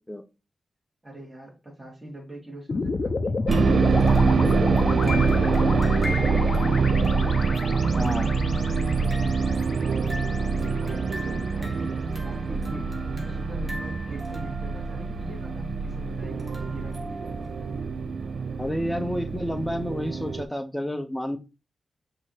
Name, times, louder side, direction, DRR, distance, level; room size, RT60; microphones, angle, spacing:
voice 1, 1.0-4.1 4.3-7.1 7.8-17.3, equal, 15° right, -3 dB, 2.4 m, -42 dB
sound 1, 2.7-11.0, left 3 dB, 50° left, 0.5 m, -31 dB
sound 2, 3.5-17.8, left 1 dB, 35° right, 1.6 m, -41 dB
sound 3, 3.5-20.4, right 4 dB, 65° right, 0.3 m, -25 dB
voice 2, 8.0-8.3 12.5-12.8 18.6-21.4, equal, 10° left, 7 dB, 0.7 m, -30 dB
5.5 x 2.8 x 3.1 m, 0.30 s
cardioid pair, 75°, 0 cm